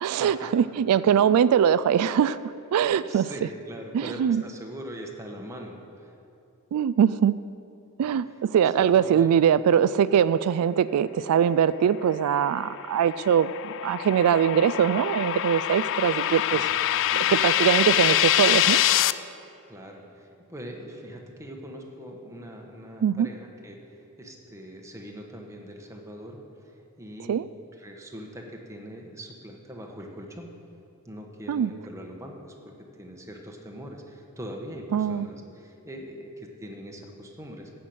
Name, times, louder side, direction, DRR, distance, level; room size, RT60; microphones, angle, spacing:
voice 1, 0.0-2.4 2.7-3.3 3.9-4.4 6.7-7.4 8.0-16.6 17.3-18.8 23.0-23.3 27.3-27.5 31.5-31.7 34.9-35.3, right 8 dB, 85° right, 17 dB, 0.3 m, -22 dB
voice 2, 2.9-6.1 8.8-9.3 16.5-17.4 19.7-27.4 27.8-30.5 31.0-37.8, equal, 15° right, 1 dB, 1.2 m, -42 dB
sound 1, 12.3-19.1, left 13 dB, 55° left, 0.3 m, -25 dB
15.5 x 5.9 x 7.9 m, 2.8 s
head